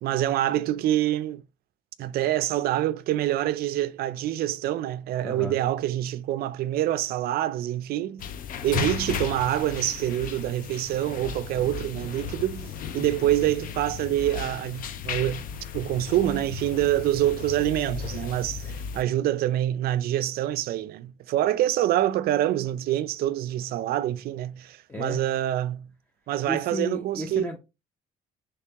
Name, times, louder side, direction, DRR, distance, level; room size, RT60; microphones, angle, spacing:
voice 1, 0.0-1.4 2.0-8.3 8.6-15.4 15.7-25.9 26.3-27.5, right 13 dB, 65° right, 0.4 m, -26 dB
voice 2, 5.2-5.6 24.9-25.2 26.4-27.6, left 1 dB, 10° left, 0.6 m, -33 dB
sound 1, 8.2-19.0, left 8 dB, 55° left, 0.5 m, -35 dB
3.4 x 3.3 x 2.8 m
cardioid pair, 110°, 17 cm